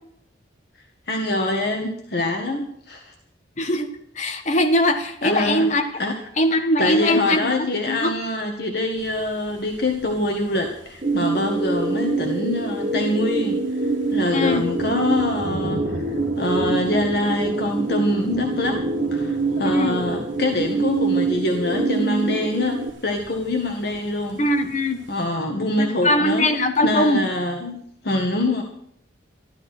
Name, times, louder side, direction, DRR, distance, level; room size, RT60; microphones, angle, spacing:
voice 1, 1.1-3.1 5.2-5.7 6.0-6.1 6.8-13.6 14.1-16.0 16.4-18.8 19.1-24.4 25.1-26.5 26.8-28.6, left 1 dB, 55° left, 2 dB, 1.8 m, -24 dB
voice 2, 3.6-3.9 4.1-5.8 6.4-7.5 7.9-8.1 14.3-14.6 19.6-20.0 24.4-25.0 25.6-27.2, left 1 dB, 35° left, 4 dB, 1.4 m, -21 dB
sound 1, 9.0-25.2, right 1 dB, 70° right, 1.6 m, -38 dB
sound 2, 11.0-22.9, right 3 dB, 35° right, 0.9 m, -25 dB
13.5 x 12.5 x 6.1 m, 0.70 s
head